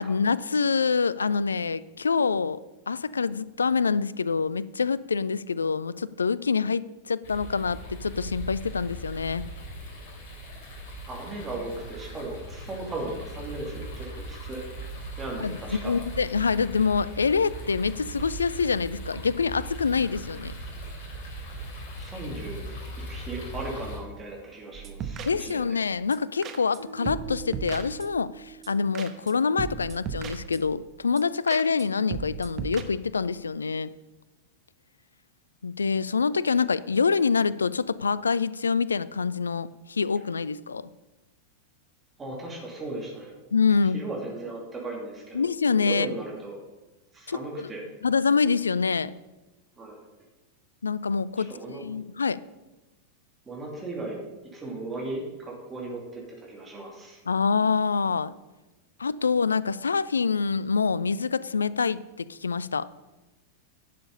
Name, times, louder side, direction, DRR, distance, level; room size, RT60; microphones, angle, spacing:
voice 1, 0.0-2.6 2.9-9.5 15.4-20.5 25.2-33.9 35.6-40.9 43.5-44.0 45.3-46.1 47.3-47.7 48.0-49.1 50.8-52.4 57.3-58.3 59.0-62.9, left 5 dB, 75° left, 19 dB, 0.3 m, -26 dB
sound 1, 7.2-24.0, right 1 dB, 50° left, 2.8 m, -39 dB
voice 2, 11.1-14.6 15.2-15.9 22.0-22.6 23.0-25.8 42.2-43.3 43.9-45.4 45.7-46.6 47.1-47.8 49.8-50.0 51.5-51.8 53.5-54.2 54.5-57.2, right 2 dB, 15° right, -1 dB, 2.7 m, -37 dB
sound 2, 24.7-25.8 26.1-26.2 26.4-26.8 27.1-28.3 28.6-28.7 28.9-29.3 29.6-30.8 31.2-31.3 31.5-31.9 32.1-32.8, right 7 dB, 30° right, 1.0 m, -36 dB
sound 3, 26.8-29.9, right 7 dB, 75° right, 3.3 m, -45 dB
11.5 x 6.8 x 5.4 m, 1.1 s
figure-of-eight pair, 90°, 0 cm